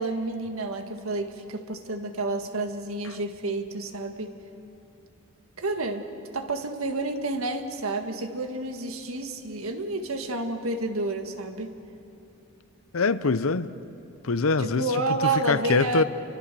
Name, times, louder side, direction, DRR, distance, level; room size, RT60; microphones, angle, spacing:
voice 1, 0.0-4.3 5.6-6.1 6.3-11.7 14.6-16.0, right 2 dB, 80° right, 1.8 m, -30 dB
voice 2, 12.9-13.7 14.2-14.9 15.2-16.0, left 4 dB, 75° left, 0.7 m, -24 dB
29.5 x 23.5 x 6.9 m
head